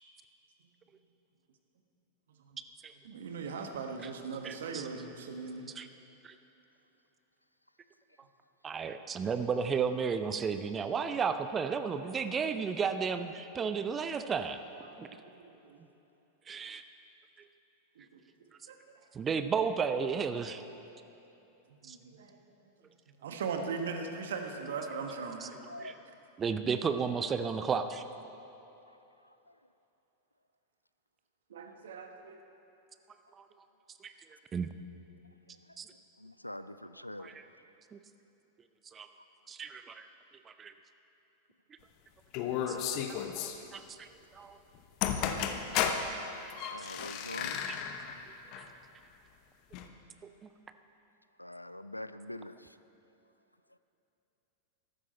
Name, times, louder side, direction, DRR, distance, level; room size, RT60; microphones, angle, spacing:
voice 1, 3.0-5.7 14.8-15.8 18.0-18.1 18.7-18.8 21.8-22.4 23.2-25.6 31.5-32.4, right 5 dB, 60° right, 5 dB, 1.2 m, -39 dB
voice 2, 4.4-4.9 5.7-5.9 6.2-6.3 8.6-14.6 15.0-15.1 16.5-16.8 19.1-20.6 21.8-22.0 25.4-25.5 25.8-26.0 26.4-28.0 33.4-33.5 34.0-34.1 34.5-34.7 35.8-35.9 37.2-37.5 37.9-38.0 38.9-39.1 39.5-40.1 40.5-40.7 42.7-44.1 44.3-44.6 46.8-46.9 47.4-47.8 50.4-50.5, right 6 dB, 20° right, 10 dB, 0.6 m, -33 dB
voice 3, 36.2-37.3 46.7-47.6 51.4-52.6, left 1 dB, 85° left, 13 dB, 0.4 m, -43 dB
sound 1, 42.3-43.6 44.7-44.8 45.0-46.1 46.5-48.2 48.5-48.7 49.7-49.9, left 8 dB, 40° left, 0.8 m, -33 dB
14.5 x 12.5 x 4.1 m, 3.0 s
figure-of-eight pair, 90°, 0 cm